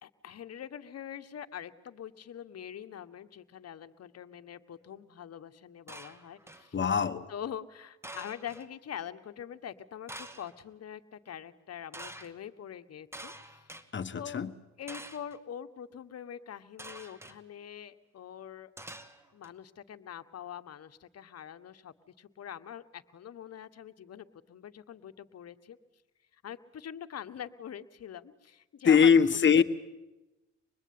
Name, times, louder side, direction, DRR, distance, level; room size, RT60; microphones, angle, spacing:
voice 1, 0.0-6.8 7.3-13.7 14.1-14.4 14.8-18.7 19.3-25.8 26.4-29.1 29.5-29.6, left 9 dB, 55° left, 10 dB, 1.6 m, -44 dB
sound 1, 5.9-6.7 8.0-8.7 10.1-10.6 11.9-12.3 13.1-13.8 14.9-15.4 16.8-17.4 18.8-19.5, right 1 dB, 10° right, 2.2 m, -46 dB
voice 2, 6.7-7.3 13.9-14.5 28.8-29.6, left 6 dB, 40° left, 10 dB, 1.5 m, -22 dB
25.5 x 21.0 x 9.6 m, 1.0 s
cardioid pair, 90°, 30 cm